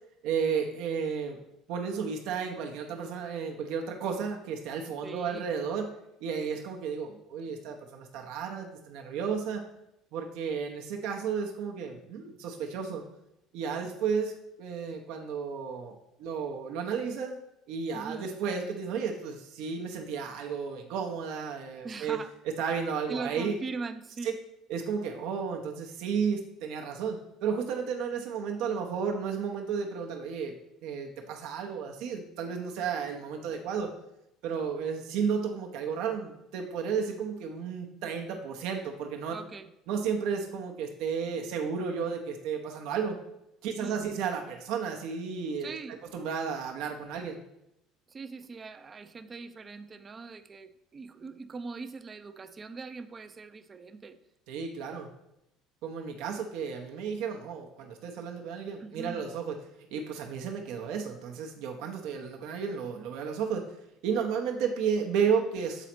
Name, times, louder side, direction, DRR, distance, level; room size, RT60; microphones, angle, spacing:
voice 1, 0.2-1.4 1.7-5.9 6.2-9.6 10.1-13.0 13.5-17.4 17.7-23.6 24.2-24.3 24.7-30.5 30.8-33.9 34.4-39.3 39.9-43.2 43.6-47.4 54.5-55.1 55.8-59.5 59.9-63.6 64.0-65.9, right 6 dB, 65° right, 2 dB, 0.7 m, -33 dB
voice 2, 5.0-5.5 17.9-18.3 21.8-22.3 23.1-24.4 39.3-39.7 43.6-44.0 45.6-46.0 48.1-54.2 58.8-59.3, right 4 dB, 30° right, 10 dB, 0.5 m, -41 dB
7.0 x 4.0 x 4.3 m, 0.84 s
hypercardioid pair, 70°, 0 cm